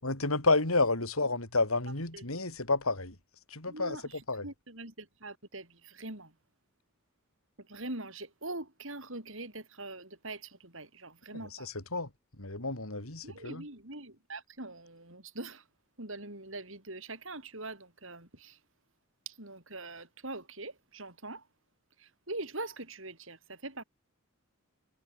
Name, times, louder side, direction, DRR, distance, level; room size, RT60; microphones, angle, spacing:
voice 1, 0.0-3.2 3.5-4.5 11.3-12.1 12.4-13.7, left 3 dB, 80° left, 5.3 m, -30 dB
voice 2, 3.7-4.0 4.4-6.3 7.7-11.7 13.2-15.6 16.0-18.6 19.3-21.4 22.3-23.8, right 2 dB, 65° right, 7.1 m, -43 dB
head